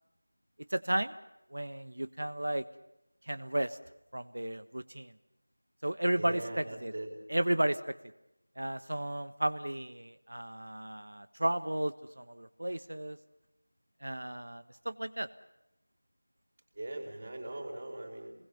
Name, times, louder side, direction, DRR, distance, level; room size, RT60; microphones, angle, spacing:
voice 1, 0.7-1.1 1.5-2.6 3.3-3.8 4.1-5.1 5.8-6.9 7.3-7.9 8.6-13.2 14.0-15.3, right 1 dB, 65° right, 13 dB, 1.2 m, -33 dB
voice 2, 6.2-7.1 16.8-18.3, right 1 dB, 35° right, 2 dB, 4.4 m, -40 dB
27.5 x 20.5 x 7.0 m, 0.88 s
figure-of-eight pair, 175°, 0 cm